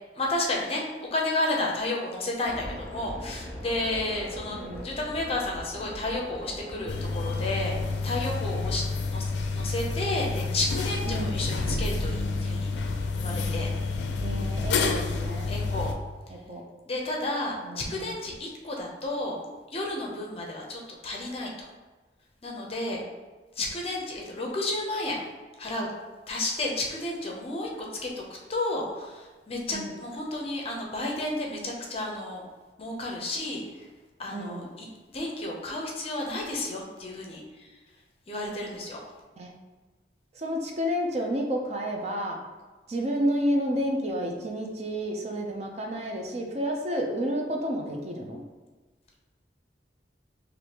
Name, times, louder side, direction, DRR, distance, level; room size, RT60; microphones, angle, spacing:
voice 1, 0.2-8.8 9.1-12.7 13.2-13.7 15.5-15.9 16.9-19.4 19.7-21.7 22.4-23.0 23.6-25.2 25.6-25.9 26.3-27.7 28.0-28.2 28.5-32.4 32.8-33.8 34.2-37.7 38.3-39.0, left 2 dB, 35° left, -1 dB, 0.6 m, -32 dB
sound 1, 2.5-8.4, equal, 10° left, 1.1 m, -41 dB
voice 2, 4.4-4.9 11.1-11.5 14.2-15.5 16.3-16.6 17.6-18.2 29.7-29.9 34.3-34.7 39.4-39.5 40.3-42.4 42.9-48.4, equal, 40° right, 1 dB, 0.4 m, -30 dB
sound 2, 6.9-15.9, left 3 dB, 85° left, 0.4 m, -29 dB
4.8 x 2.6 x 2.9 m, 1.3 s
head